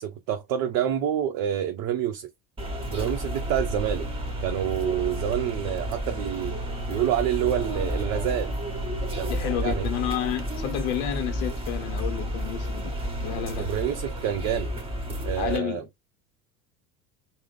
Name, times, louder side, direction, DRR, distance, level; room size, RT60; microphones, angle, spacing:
voice 1, 0.0-2.3 2.9-4.1 4.4-6.6 6.9-8.6 9.2-9.9 13.6-14.7 15.2-15.8, right 10 dB, 45° right, 0.6 m, -27 dB
sound 1, 2.6-15.6, equal, 15° right, 1.3 m, -31 dB
voice 2, 9.3-12.9 13.2-13.7 15.4-15.8, left 11 dB, 55° left, 0.7 m, -30 dB
3.4 x 2.0 x 3.4 m
hypercardioid pair, 80°, 41 cm